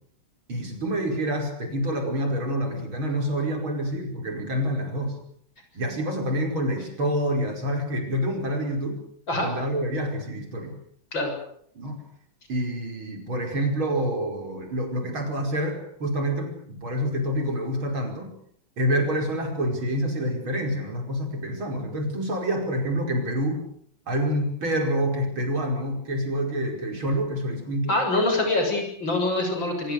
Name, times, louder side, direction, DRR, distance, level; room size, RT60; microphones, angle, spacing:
voice 1, 0.5-5.2 5.7-9.0 9.4-10.8 11.8-12.0 12.5-18.3 18.8-23.6 24.1-27.9, equal, 80° right, 3 dB, 6.0 m, -27 dB
voice 2, 27.9-29.9, left 2 dB, 65° left, 4 dB, 7.6 m, -24 dB
25.0 x 23.5 x 6.7 m, 0.64 s
omnidirectional pair, 2.2 m